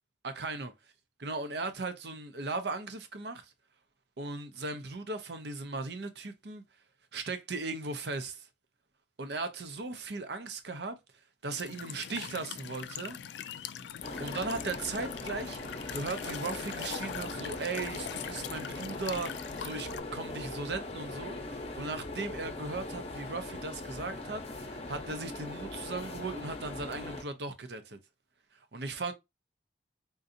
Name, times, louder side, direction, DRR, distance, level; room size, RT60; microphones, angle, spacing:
voice 1, 0.2-0.7 1.2-3.5 4.2-6.6 7.1-8.5 9.2-11.0 11.4-13.2 14.2-15.6 15.9-28.0 28.7-29.1, right 3 dB, 60° right, 0.6 m, -37 dB
Walk footsteps / Chirp tweet / Stream, 11.5-20.0, left 9 dB, 65° left, 0.3 m, -42 dB
sound 1, 14.0-27.2, left 2 dB, 35° left, 0.7 m, -40 dB
3.8 x 2.6 x 2.6 m
head